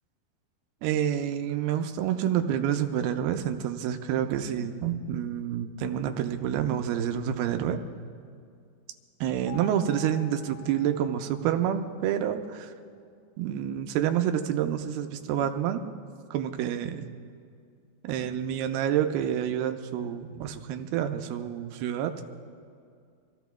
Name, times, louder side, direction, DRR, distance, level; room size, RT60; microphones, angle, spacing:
voice 1, 0.8-7.8 9.2-12.7 13.4-15.8 16.3-17.0 18.0-22.1, right 10 dB, 85° right, 6 dB, 2.6 m, -28 dB
sound 1, 9.5-12.4, left 10 dB, 90° left, 0.9 m, -48 dB
26.0 x 15.5 x 2.3 m, 2.3 s
omnidirectional pair, 4.5 m